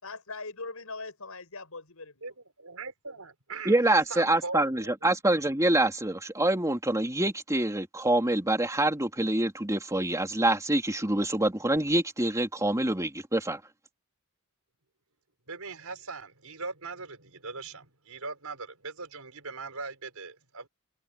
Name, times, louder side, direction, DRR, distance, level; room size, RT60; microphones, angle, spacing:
voice 1, 0.0-2.2, left 3 dB, 80° left, 6.7 m, -40 dB
voice 2, 2.2-4.9 15.5-20.7, right 4 dB, 85° right, 5.6 m, -40 dB
voice 3, 3.6-13.6, right 1 dB, 15° right, 2.7 m, -26 dB
head